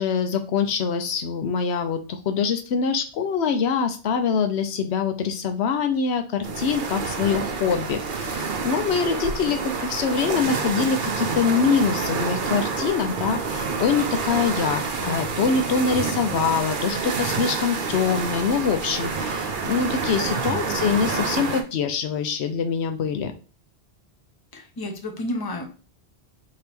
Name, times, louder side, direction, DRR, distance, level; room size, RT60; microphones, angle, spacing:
voice 1, 0.0-23.3, left 6 dB, 80° left, 7 dB, 0.9 m, -24 dB
sound 1, 6.4-21.6, right 4 dB, 55° right, 0.7 m, -28 dB
voice 2, 20.5-20.9 24.5-25.6, left 1 dB, 25° left, 3 dB, 0.7 m, -32 dB
4.4 x 2.9 x 3.4 m, 0.35 s
omnidirectional pair, 1.1 m